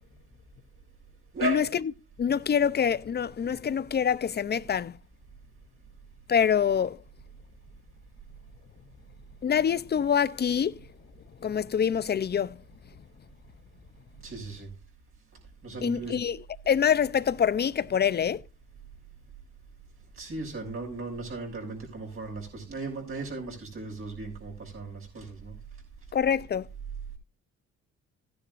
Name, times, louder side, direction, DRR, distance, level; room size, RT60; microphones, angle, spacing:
voice 1, 1.3-1.7 14.2-14.7 15.6-16.2 20.2-25.6, right 2 dB, 45° right, 6.6 m, -36 dB
voice 2, 2.2-5.0 6.3-7.0 9.4-10.8 11.4-12.6 15.8-16.4 16.7-18.4 26.1-26.7, left 8 dB, 35° left, 0.6 m, -25 dB
16.0 x 10.0 x 2.5 m
cardioid pair, 90°, 30 cm